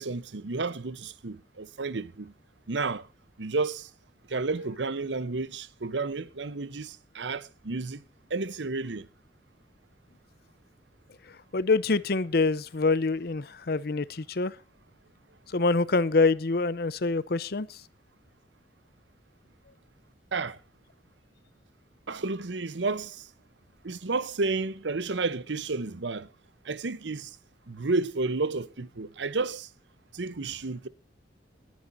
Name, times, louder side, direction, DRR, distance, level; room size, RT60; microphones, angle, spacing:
voice 1, 0.0-2.3 2.7-3.1 3.4-3.9 4.3-8.0 8.3-9.1 20.3-20.6 22.1-23.3 23.8-26.3 26.6-27.4 27.7-29.7 30.1-30.9, right 3 dB, 85° right, 0.9 m, -31 dB
voice 2, 11.5-14.5 15.5-17.7, left 3 dB, 60° left, 0.7 m, -25 dB
21.5 x 9.5 x 2.7 m
head